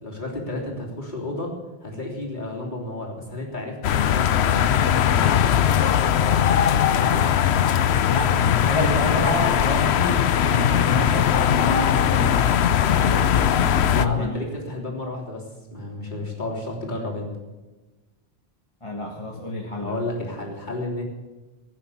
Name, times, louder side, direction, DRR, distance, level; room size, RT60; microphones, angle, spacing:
voice 1, 0.0-1.5 1.8-5.4 6.1-7.3 13.9-15.4 15.7-17.3 19.8-21.0, left 2 dB, 45° left, -2 dB, 3.6 m, -32 dB
sound 1, 3.8-14.1, left 9 dB, 85° left, 0.9 m, -20 dB
voice 2, 8.1-12.6 12.9-14.4 18.8-20.0, left 2 dB, 30° left, 0 dB, 1.6 m, -28 dB
18.0 x 9.2 x 7.3 m, 1.2 s
omnidirectional pair, 1.1 m